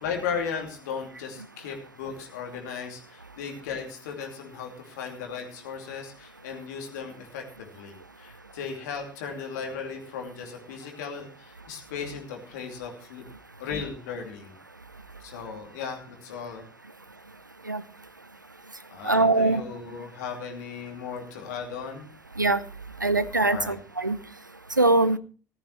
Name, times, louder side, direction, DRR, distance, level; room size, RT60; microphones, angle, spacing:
voice 1, 0.0-13.2 13.6-14.5 15.2-16.6 18.9-22.1 23.5-23.8, left 6 dB, 70° left, 2 dB, 2.7 m, -36 dB
voice 2, 19.0-19.6 22.4-22.6 23.0-24.2 24.8-25.2, right 2 dB, 90° right, 16 dB, 0.5 m, -22 dB
15.0 x 13.5 x 3.2 m, 0.37 s
figure-of-eight pair, 55°, 10 cm